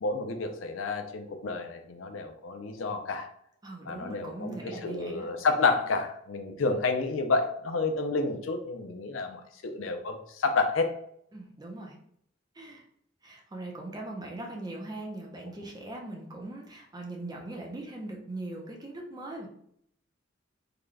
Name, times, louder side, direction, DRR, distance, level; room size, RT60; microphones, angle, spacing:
voice 1, 0.0-3.3 3.9-10.9, left 3 dB, 90° left, 6 dB, 0.5 m, -30 dB
voice 2, 3.6-5.3 11.3-11.9 12.5-12.8 13.2-19.5, right 2 dB, 20° right, 0 dB, 0.6 m, -40 dB
3.8 x 2.3 x 3.2 m, 0.69 s
head